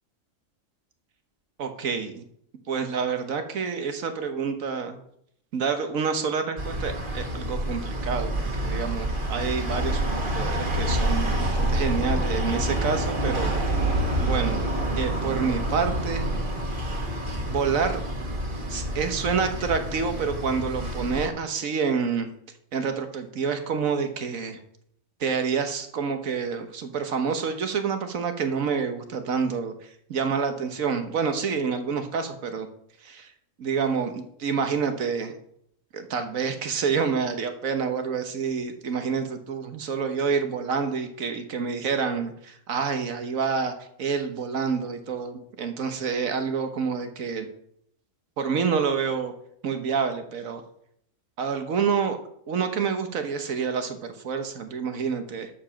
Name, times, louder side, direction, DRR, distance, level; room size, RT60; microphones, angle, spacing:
voice 1, 1.6-2.2 2.7-5.0 5.5-13.5 14.2-14.6 15.0-16.3 17.5-18.0 18.7-22.3 22.7-24.6 25.2-29.7 30.1-32.7 33.0-33.3 33.6-35.3 35.9-43.7 44.0-47.5 48.4-49.3 49.6-50.6 51.4-52.2 52.5-55.5, right 6 dB, 85° right, 7 dB, 1.5 m, -28 dB
sound 1, 6.6-21.3, right 1 dB, 40° right, 1.7 m, -27 dB
12.5 x 5.0 x 5.8 m, 0.71 s
omnidirectional pair, 1.4 m